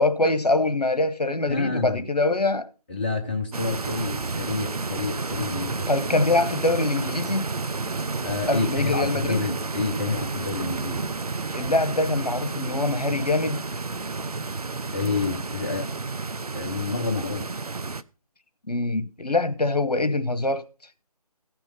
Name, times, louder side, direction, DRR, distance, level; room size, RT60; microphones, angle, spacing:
voice 1, 0.0-2.7 5.9-7.5 8.5-9.4 11.5-13.6 18.7-20.6, left 2 dB, 75° left, 1.1 m, -24 dB
voice 2, 1.5-2.1 2.9-5.9 8.2-11.1 14.9-16.0 16.5-17.6, left 4 dB, 15° left, 0.6 m, -29 dB
sound 1, 3.5-18.0, right 3 dB, 70° right, 0.6 m, -31 dB
16.0 x 6.1 x 5.3 m
figure-of-eight pair, 155°, 20 cm